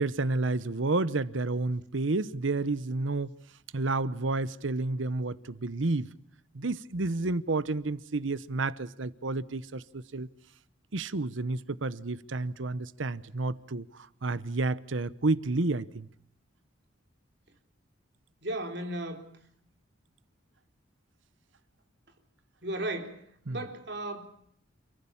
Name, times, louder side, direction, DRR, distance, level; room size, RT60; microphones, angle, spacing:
voice 1, 0.0-3.3 3.7-6.1 6.5-10.3 10.9-16.1 23.5-23.6, right 3 dB, 75° right, 0.9 m, -30 dB
voice 2, 18.4-19.3 22.6-23.2 23.5-24.2, right 1 dB, 60° right, 3.7 m, -35 dB
29.5 x 15.0 x 8.6 m
head